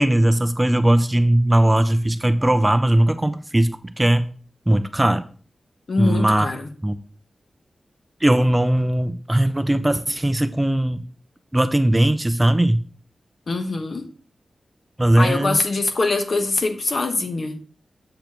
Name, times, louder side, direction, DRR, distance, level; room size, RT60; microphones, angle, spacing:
voice 1, 0.0-4.2 4.7-5.2 6.0-6.5 6.8-7.0 8.2-11.0 11.5-12.8 15.0-15.6, right 1 dB, 15° right, 11 dB, 0.4 m, -19 dB
voice 2, 5.9-6.7 13.5-14.1 15.2-17.6, left 3 dB, 55° left, 6 dB, 1.1 m, -23 dB
7.7 x 6.9 x 3.0 m, 0.41 s
wide cardioid pair, 120°, 0 cm